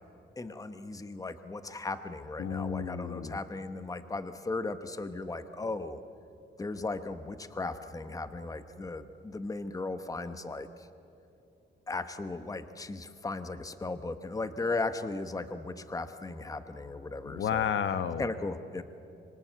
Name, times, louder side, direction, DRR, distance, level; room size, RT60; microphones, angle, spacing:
voice 1, 0.4-6.0 6.6-10.7 11.9-17.7 18.2-18.8, left 3 dB, 15° left, 10 dB, 1.0 m, -36 dB
voice 2, 2.4-3.4 17.2-18.3, left 8 dB, 75° left, 11 dB, 1.2 m, -31 dB
26.0 x 24.0 x 8.1 m, 2.7 s
cardioid pair, 130°, 20 cm